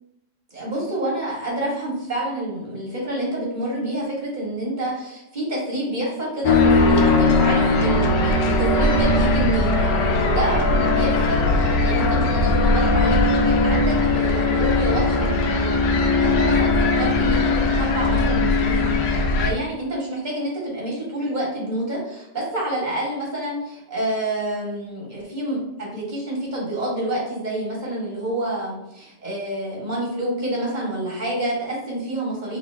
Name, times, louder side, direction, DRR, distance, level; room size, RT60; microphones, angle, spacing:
voice 1, 0.5-18.8 19.0-32.6, right 1 dB, 25° right, -4 dB, 1.6 m, -28 dB
sound 1, 6.4-19.5, left 3 dB, 85° left, 1.3 m, -19 dB
3.7 x 3.3 x 3.4 m, 0.87 s
omnidirectional pair, 1.9 m